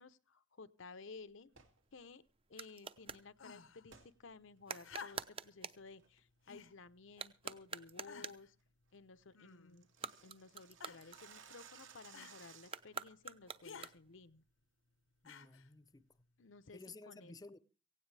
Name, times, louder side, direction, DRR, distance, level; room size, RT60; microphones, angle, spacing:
voice 1, 0.0-1.5 1.9-2.2 2.5-8.6 8.9-9.9 10.2-14.4 16.4-17.3, left 4 dB, 70° left, 0.8 m, -56 dB
sound 1, 1.5-3.3 4.6-5.9 7.1-8.5 9.8-11.7 12.6-14.2, right 5 dB, 30° right, 0.7 m, -48 dB
sound 2, 1.5-1.8 3.9-4.1 4.6-4.7 5.2-5.5 5.9-6.2 6.5-6.8 7.2-7.3 7.7-7.9 8.3-8.4 8.7-8.8 9.0-9.1 9.3-13.0, right 7 dB, 80° right, 2.5 m, -59 dB
sound 3, 3.4-3.9 4.8-5.5 6.5-6.8 7.5-7.6 8.1-8.5 9.3-9.9 10.8-11.2 12.1-12.4 13.6-13.9 15.2-15.7 16.7-16.8, left 6 dB, 90° left, 1.2 m, -53 dB
voice 2, 15.2-16.1 16.7-17.6, left 3 dB, 20° left, 0.7 m, -54 dB
17.0 x 16.5 x 3.3 m
head